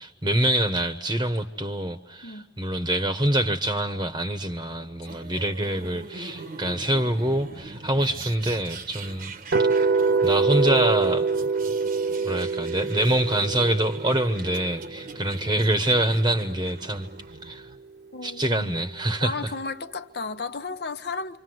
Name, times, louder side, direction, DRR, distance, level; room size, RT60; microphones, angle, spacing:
voice 1, 0.0-9.3 9.6-9.7 10.2-11.3 12.2-17.1 17.4-17.7 18.2-19.5, right 1 dB, 25° right, 1.0 m, -25 dB
Santa-Generic by troutstrangler Remix, 5.0-17.8, right 3 dB, 50° right, 1.0 m, -42 dB
sound 1, 9.5-15.6, right 4 dB, 75° right, 1.2 m, -25 dB
voice 2, 18.1-18.7 19.2-21.4, left 4 dB, 65° left, 1.0 m, -34 dB
27.0 x 26.0 x 7.9 m
head